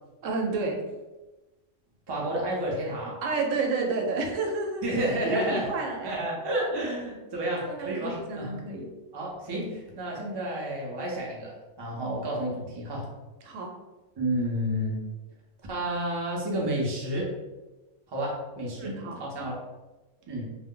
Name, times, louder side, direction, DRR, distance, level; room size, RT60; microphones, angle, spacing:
voice 1, 0.2-0.8 3.2-4.8 5.2-6.2 7.7-8.9 13.4-13.7 18.8-19.2, right 3 dB, 75° right, 1 dB, 0.9 m, -30 dB
voice 2, 2.1-3.2 4.8-5.7 6.0-8.6 9.1-13.1 14.2-15.0 15.7-17.3 18.1-18.9 19.2-19.6 20.3-20.5, right 1 dB, 40° right, -3 dB, 0.3 m, -30 dB
2.1 x 2.0 x 3.6 m, 1.1 s
omnidirectional pair, 1.3 m